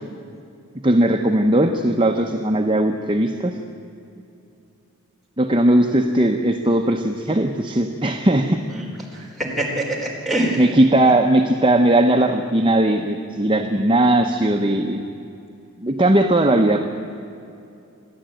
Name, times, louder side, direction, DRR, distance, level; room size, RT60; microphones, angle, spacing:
voice 1, 0.8-3.6 5.4-8.6 10.5-15.0 15.8-16.8, right 1 dB, 20° right, 2 dB, 0.8 m, -18 dB
voice 2, 9.1-10.6, right 1 dB, ahead, -2 dB, 4.1 m, -24 dB
29.0 x 11.5 x 9.1 m, 2.6 s
head